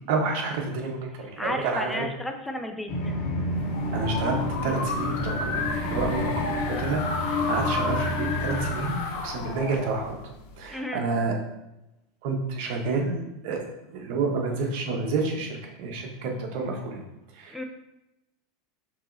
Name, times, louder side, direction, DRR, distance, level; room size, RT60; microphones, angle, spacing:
voice 1, 0.1-2.0 3.9-10.1 10.6-11.3 12.2-17.0 17.4-17.5, right 3 dB, 60° right, 1 dB, 1.0 m, -29 dB
voice 2, 1.4-3.1 10.7-11.1 17.5-17.6, left 1 dB, 5° left, 5 dB, 0.4 m, -33 dB
sound 1, 2.9-8.7, left 1 dB, 50° left, 1.6 m, -30 dB
sound 2, 3.5-10.7, left 4 dB, 70° left, 0.6 m, -32 dB
6.0 x 2.9 x 2.6 m, 0.92 s
supercardioid pair, 135°, 0 cm